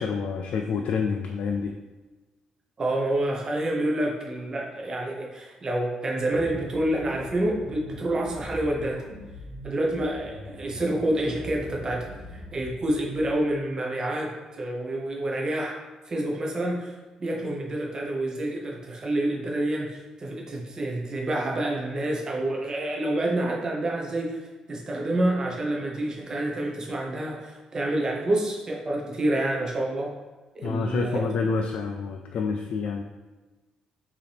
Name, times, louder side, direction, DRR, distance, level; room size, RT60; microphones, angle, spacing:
voice 1, 0.0-1.7 30.6-33.0, left 5 dB, 75° left, 3 dB, 0.3 m, -28 dB
voice 2, 2.8-9.0 9.6-15.8 16.1-24.4 24.7-30.1 30.5-31.3, right 1 dB, 35° right, -1 dB, 0.8 m, -28 dB
sound 1, 6.3-13.4, left 1 dB, 75° right, 1.1 m, -42 dB
4.9 x 2.9 x 3.4 m, 1.2 s
cardioid pair, 105°, 2 cm